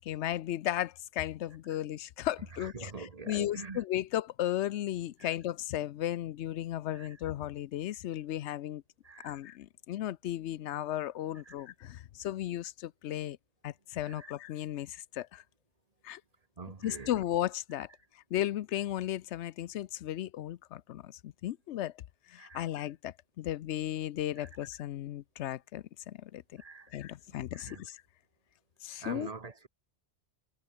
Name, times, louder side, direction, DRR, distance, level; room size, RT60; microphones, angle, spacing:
voice 1, 0.0-2.9 3.3-8.8 9.2-13.4 13.6-15.4 16.0-16.2 16.8-17.9 18.3-21.9 22.3-26.6 26.9-28.0 28.8-29.3, left 12 dB, 75° left, 0.9 m, -35 dB
voice 2, 2.5-3.8 5.2-5.3 6.9-7.2 9.0-9.4 11.4-11.7 14.0-14.3 16.6-17.2 22.4-22.7 24.4-24.6 26.6-26.9 27.3-27.8 29.0-29.7, right 4 dB, 35° right, 1.2 m, -45 dB
omnidirectional pair, 1.2 m